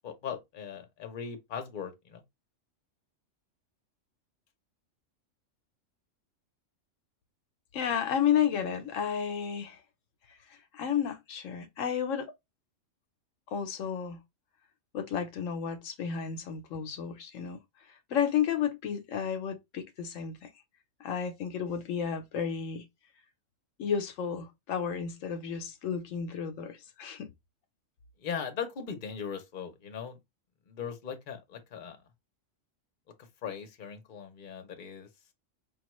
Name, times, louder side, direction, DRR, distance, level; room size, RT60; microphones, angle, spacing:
voice 1, 0.0-2.2 28.2-30.2 30.7-32.0 33.2-35.1, left 7 dB, 45° left, 0.9 m, -39 dB
voice 2, 7.7-9.8 10.5-12.3 13.5-14.2 14.9-17.6 18.1-20.5 21.0-22.8 23.8-27.3, left 8 dB, 80° left, 1.0 m, -32 dB
5.1 x 2.3 x 3.0 m
omnidirectional pair, 1.3 m